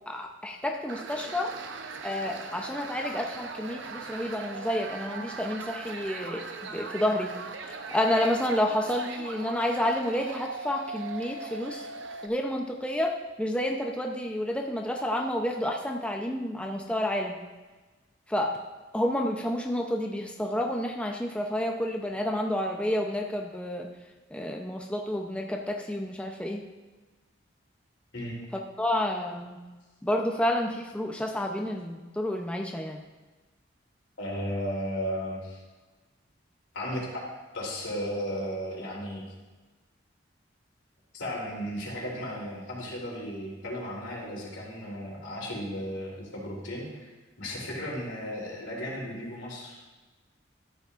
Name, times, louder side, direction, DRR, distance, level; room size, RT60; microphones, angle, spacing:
voice 1, 0.1-1.5 2.0-7.3 7.6-11.9 12.2-17.4 18.3-18.6 18.9-23.9 24.3-26.7 28.8-29.6 30.0-33.0, left 1 dB, 5° left, 1 dB, 0.6 m, -30 dB
sound 1, 0.9-12.3, right 4 dB, 80° right, 0.7 m, -40 dB
voice 2, 34.2-35.6 36.7-37.2 37.5-39.2 41.1-47.1 47.4-50.0, equal, 85° left, -4 dB, 3.1 m, -35 dB
13.0 x 8.1 x 2.5 m, 1.2 s
head